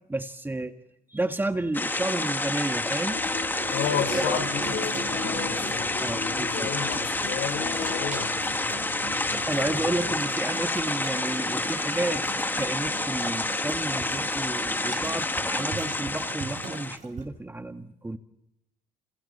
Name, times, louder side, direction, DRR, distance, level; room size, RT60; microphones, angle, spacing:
voice 1, 0.1-0.7 1.1-3.2 4.1-4.4 6.0-6.7 7.3-7.4 9.5-12.2 12.6-18.2, right 2 dB, 10° right, 7 dB, 1.7 m, -31 dB
sound 1, 1.7-17.0, left 2 dB, 10° left, 1.2 m, -29 dB
sound 2, 3.1-10.2, left 7 dB, 65° left, 3.4 m, -38 dB
Water tap faucet / Sink (filling or washing), 3.4-17.2, right 5 dB, 45° right, 5.2 m, -41 dB
voice 2, 3.7-8.4, left 8 dB, 80° left, 7 dB, 4.9 m, -33 dB
29.0 x 28.5 x 4.3 m, 0.88 s
cardioid pair, 110°, 17 cm